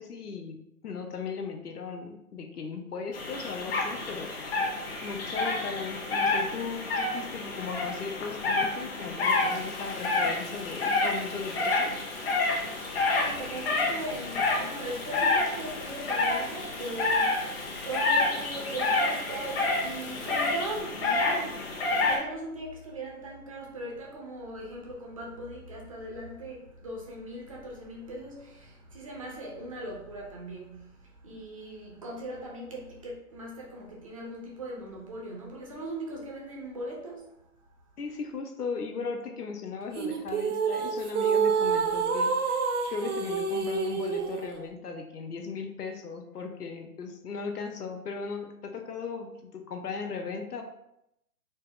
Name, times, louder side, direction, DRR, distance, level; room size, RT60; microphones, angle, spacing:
voice 1, 0.0-4.4 5.0-12.0 38.0-42.6 42.9-50.6, left 5 dB, 85° left, 0.8 m, -37 dB
sound 1, 3.1-22.2, left 3 dB, 40° left, 1.1 m, -29 dB
Frying (food), 9.2-20.8, left 3 dB, 65° left, 1.2 m, -47 dB
voice 2, 12.8-37.5, right 1 dB, 25° right, 0.5 m, -39 dB
sound 2, 39.9-44.5, right 5 dB, 75° right, 0.8 m, -27 dB
4.2 x 2.0 x 3.6 m
hypercardioid pair, 145°, 45 cm